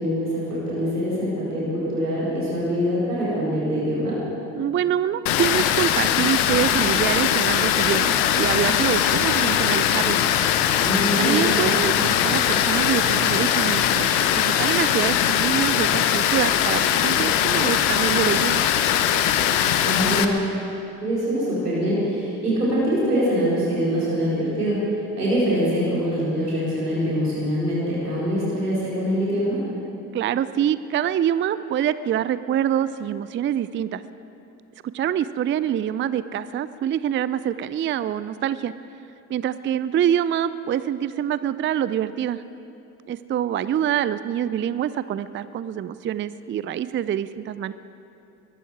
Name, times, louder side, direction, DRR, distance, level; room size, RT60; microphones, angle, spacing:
voice 1, 0.0-4.2 10.8-11.5 19.8-20.5 21.0-24.8 25.2-29.6, equal, 90° right, -8 dB, 4.4 m, -24 dB
voice 2, 4.6-10.2 11.2-18.6 30.1-34.0 34.9-38.7 39.3-42.4 43.1-47.7, right 10 dB, 25° right, 15 dB, 0.5 m, -25 dB
Water, 5.3-20.2, left 10 dB, 70° left, 1.0 m, -21 dB
22.0 x 12.5 x 4.7 m, 2.8 s
figure-of-eight pair, 50°, 45 cm